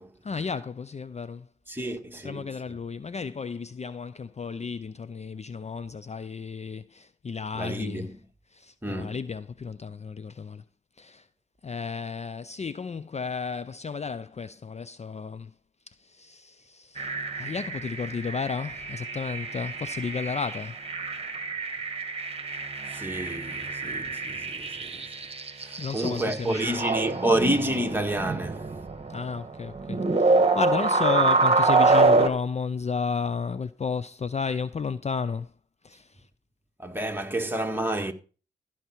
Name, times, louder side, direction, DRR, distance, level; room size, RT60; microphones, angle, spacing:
voice 1, 0.2-1.5 1.8-2.0 2.2-8.1 8.5-10.6 11.0-11.3 11.6-15.5 16.0-17.1 17.3-20.8 25.8-26.8 29.1-35.5 35.8-36.3, left 5 dB, 35° left, 0.5 m, -33 dB
voice 2, 1.7-2.5 7.6-8.1 8.8-9.2 22.9-25.0 25.6-28.7 36.8-38.1, right 1 dB, 10° right, 1.9 m, -29 dB
sound 1, 17.0-32.3, right 3 dB, 30° right, 1.7 m, -26 dB
15.0 x 5.9 x 4.6 m
supercardioid pair, 50°, 20 cm